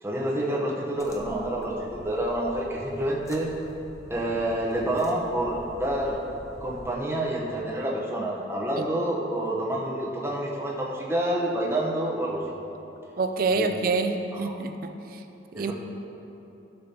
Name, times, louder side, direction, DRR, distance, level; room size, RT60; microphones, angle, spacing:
voice 1, 0.0-3.5 4.1-6.2 6.6-12.4 13.6-13.7 14.3-14.6 15.5-15.7, right 1 dB, 15° right, -3 dB, 0.9 m, -28 dB
sound 1, 0.9-6.9, equal, 15° left, 0.5 m, -46 dB
voice 2, 13.2-14.9 15.5-15.7, right 3 dB, 50° right, 7 dB, 0.4 m, -26 dB
12.0 x 6.9 x 2.9 m, 3.0 s
head